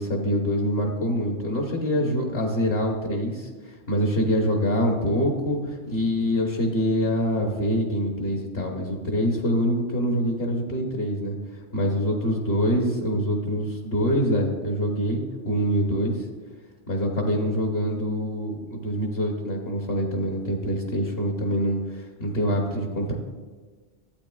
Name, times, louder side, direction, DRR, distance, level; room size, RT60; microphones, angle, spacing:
voice 1, 0.0-11.4 11.7-16.3 16.9-23.1, equal, 55° left, 1 dB, 1.2 m, -25 dB
12.0 x 8.8 x 2.3 m, 1.4 s
omnidirectional pair, 1.3 m